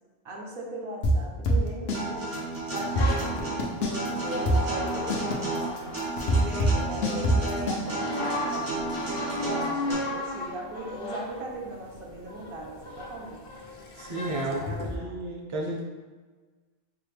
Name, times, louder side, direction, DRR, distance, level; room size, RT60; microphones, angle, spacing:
voice 1, 0.2-2.3 2.7-5.9 6.2-8.9 9.4-13.4 14.2-15.3, right 2 dB, 70° right, -2 dB, 0.9 m, -38 dB
sound 1, 1.0-2.0 2.3-2.4 2.8-4.1 4.5-7.8, equal, 80° left, 0.9 m, -24 dB
Acoustic guitar, 1.9-9.9, right 2 dB, 85° right, 1.6 m, -33 dB
sound 2, 3.0-7.0 7.8-15.0, left 1 dB, 55° left, 0.7 m, -35 dB
voice 2, 14.0-15.8, right 2 dB, 35° right, -2 dB, 0.5 m, -32 dB
4.8 x 2.1 x 3.2 m, 1.4 s
omnidirectional pair, 1.0 m